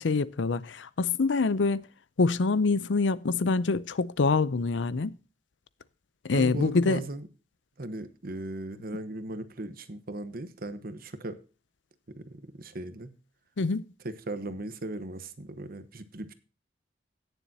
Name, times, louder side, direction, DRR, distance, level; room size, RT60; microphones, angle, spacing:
voice 1, 0.0-1.8 2.2-5.1 6.2-7.0 13.6-13.8, left 4 dB, 80° left, 0.6 m, -25 dB
voice 2, 6.3-7.2 7.8-11.4 12.1-13.1 14.0-16.3, right 1 dB, 55° right, 1.1 m, -37 dB
17.0 x 7.1 x 2.8 m
head